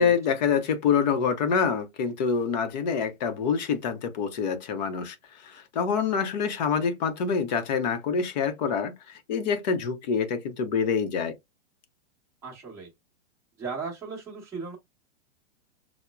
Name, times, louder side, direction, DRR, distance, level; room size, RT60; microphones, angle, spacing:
voice 1, 0.0-5.2 5.5-11.3, left 6 dB, 35° left, 0.7 m, -26 dB
voice 2, 12.4-12.9 13.6-14.8, right 4 dB, 10° right, 0.9 m, -36 dB
5.6 x 2.1 x 2.2 m
supercardioid pair, 165°, 36 cm